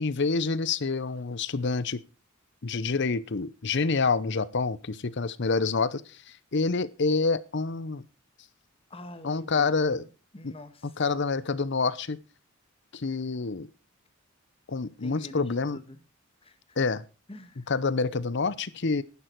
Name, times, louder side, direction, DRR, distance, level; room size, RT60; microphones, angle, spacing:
voice 1, 0.0-2.0 2.6-6.0 6.5-8.0 9.2-10.0 10.4-10.5 11.0-12.2 12.9-13.7 14.7-15.8 16.8-17.0 17.7-19.0, left 4 dB, 55° left, 18 dB, 0.7 m, -27 dB
voice 2, 8.9-11.0 15.0-16.0 16.4-16.6 17.3-17.7, left 1 dB, 25° left, 10 dB, 1.4 m, -46 dB
11.5 x 10.5 x 4.5 m, 0.32 s
head